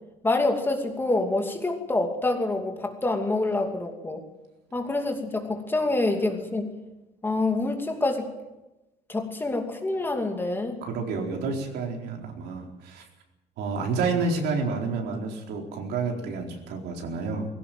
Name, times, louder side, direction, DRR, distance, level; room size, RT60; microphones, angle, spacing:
voice 1, 0.2-4.2 4.7-6.7 7.2-8.3 9.1-10.8, left 2 dB, 10° left, 3 dB, 2.6 m, -26 dB
voice 2, 10.8-13.1 13.6-17.5, right 4 dB, 70° right, 2 dB, 4.4 m, -29 dB
21.0 x 17.0 x 9.2 m, 1.0 s
cardioid pair, 165°, 17 cm